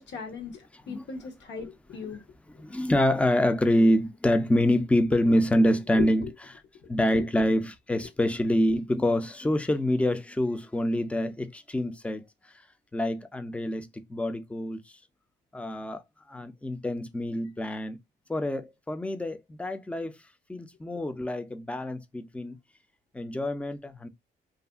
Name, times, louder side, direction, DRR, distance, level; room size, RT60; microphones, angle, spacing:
voice 1, 0.0-2.2 6.0-6.3 7.1-7.2, left 5 dB, 65° left, 0.9 m, -37 dB
voice 2, 2.6-6.2 6.5-6.6 6.9-12.2 12.9-14.8 15.5-16.0 16.3-18.0 18.3-20.1 20.5-22.6 23.1-24.1, left 1 dB, 5° left, 0.4 m, -26 dB
2.6 x 2.5 x 2.3 m
cardioid pair, 90°, 20 cm